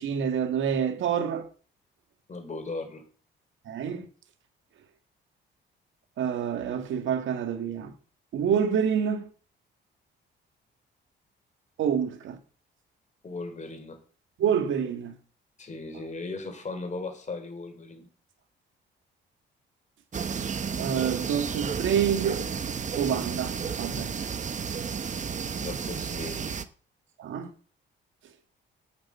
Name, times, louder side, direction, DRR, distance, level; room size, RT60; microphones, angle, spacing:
voice 1, 0.0-1.5 3.7-4.1 6.2-7.9 8.3-9.3 11.8-12.4 14.4-15.2 20.7-22.4 23.0-24.1 27.2-27.5, right 8 dB, 75° right, 1.8 m, -27 dB
voice 2, 2.3-3.0 13.2-14.0 15.6-18.1 25.6-26.6, left 3 dB, 35° left, 3.5 m, -37 dB
sound 1, 20.1-26.6, right 6 dB, 40° right, 0.9 m, -32 dB
8.9 x 7.2 x 7.3 m
cardioid pair, 90°, 20 cm